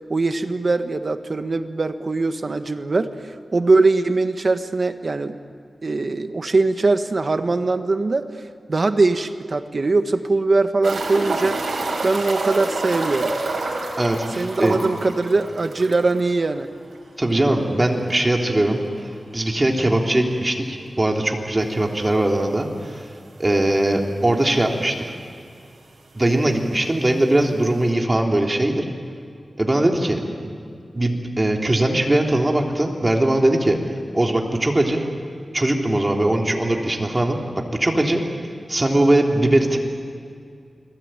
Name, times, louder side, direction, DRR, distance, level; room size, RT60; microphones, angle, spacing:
voice 1, 0.1-3.1 3.5-5.4 5.8-8.3 8.7-11.6 12.0-13.3 14.4-16.7, right 3 dB, 50° right, 8 dB, 1.5 m, -21 dB
sound 1, 10.8-16.2 16.5-16.6 16.9-17.0 19.8-19.9 21.6-21.7 22.5-22.6 22.8-22.9 23.8-23.9 24.1-24.7 25.6-25.7, right 2 dB, 75° right, 5.4 m, -28 dB
voice 2, 14.0-14.8 17.2-18.8 19.3-23.1 23.4-25.0 26.1-28.8 29.6-30.5 30.9-33.8 34.1-35.0 35.5-37.4 37.8-38.2 38.7-39.8, right 1 dB, 25° right, 1 dB, 3.4 m, -20 dB
30.0 x 21.5 x 9.1 m, 2.3 s
wide cardioid pair, 95°, 0 cm